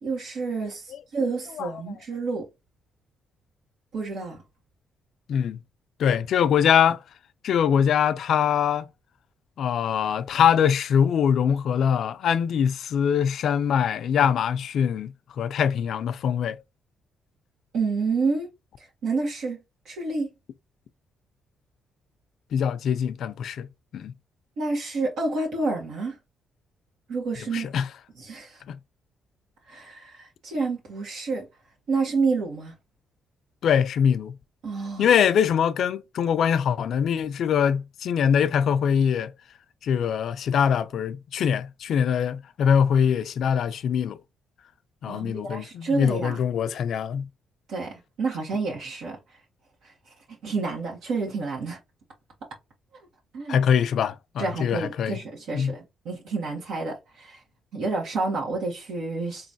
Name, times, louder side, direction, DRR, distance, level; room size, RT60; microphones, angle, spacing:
voice 1, 0.0-2.5 3.9-4.4 17.7-18.5 19.0-19.6 19.8-20.3 24.6-26.2 27.1-27.7 28.2-28.6 29.7-31.4 31.9-32.7 34.6-35.1 45.1-46.4 47.7-49.2 50.3-51.8 53.3-53.6 54.4-57.4 57.7-59.5, right 3 dB, 80° right, 1.5 m, -29 dB
voice 2, 6.0-7.0 7.4-8.9 9.6-16.6 22.5-23.7 23.9-24.1 27.5-27.9 28.7-28.8 33.6-34.4 35.0-39.3 39.8-44.2 45.0-47.3 53.5-55.2 55.5-55.7, left 8 dB, 70° left, 0.4 m, -23 dB
3.8 x 3.1 x 2.7 m
cardioid pair, 90°, 0 cm